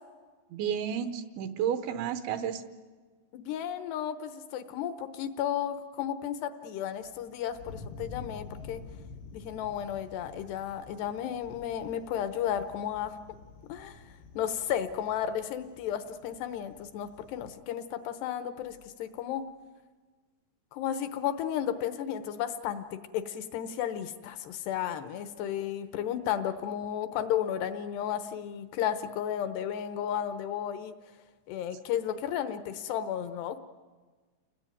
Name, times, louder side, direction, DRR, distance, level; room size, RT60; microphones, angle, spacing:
voice 1, 0.5-2.6, right 8 dB, 75° right, 10 dB, 3.1 m, -31 dB
voice 2, 3.3-8.8 9.3-13.1 13.7-14.0 14.4-19.4 20.7-30.9 31.5-33.6, left 10 dB, 75° left, 11 dB, 2.6 m, -33 dB
Thunder, 6.9-17.6, left 3 dB, 90° left, 4.2 m, -49 dB
29.5 x 21.0 x 9.2 m, 1.4 s
omnidirectional pair, 5.8 m